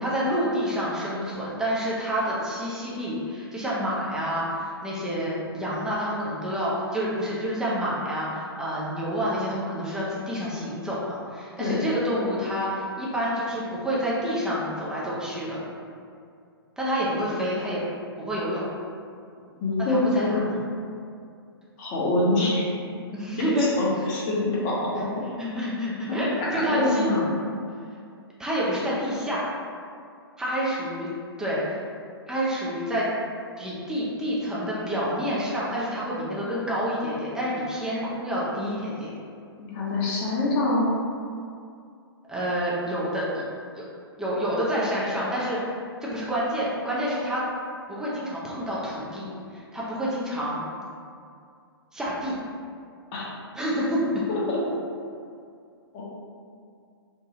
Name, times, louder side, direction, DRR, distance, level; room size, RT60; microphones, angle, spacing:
voice 1, 0.0-15.6 16.8-17.8 18.2-18.6 19.9-20.4 23.1-23.8 24.9-25.1 25.4-27.1 28.4-29.4 30.4-31.1 31.4-31.8 32.3-33.1 33.6-39.1 42.3-43.4 44.2-45.6 46.0-47.4 47.9-50.6 51.9-52.4 53.5-54.3, equal, 5° right, -7 dB, 0.5 m, -28 dB
voice 2, 19.6-20.5 21.8-22.8 23.4-25.1 26.1-27.3 39.6-40.9 53.1-53.3 54.3-54.7 55.9-56.0, left 2 dB, 30° left, -6 dB, 0.7 m, -25 dB
2.6 x 2.3 x 2.8 m, 2.3 s
figure-of-eight pair, 115°, 13 cm